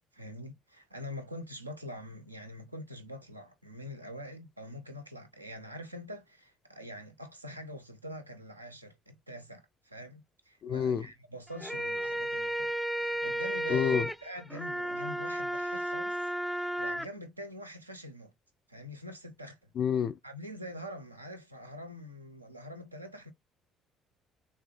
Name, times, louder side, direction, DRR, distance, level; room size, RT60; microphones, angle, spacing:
voice 1, 0.1-16.2 16.5-18.3 18.7-19.7 20.2-23.3, equal, 85° right, 0.8 m, -45 dB
voice 2, 10.6-11.1 13.7-14.1 19.8-20.2, left 8 dB, 45° left, 0.4 m, -28 dB
sound 1, 11.5-17.1, right 1 dB, ahead, 0.6 m, -33 dB
6.4 x 2.3 x 3.4 m
figure-of-eight pair, 50°, 0 cm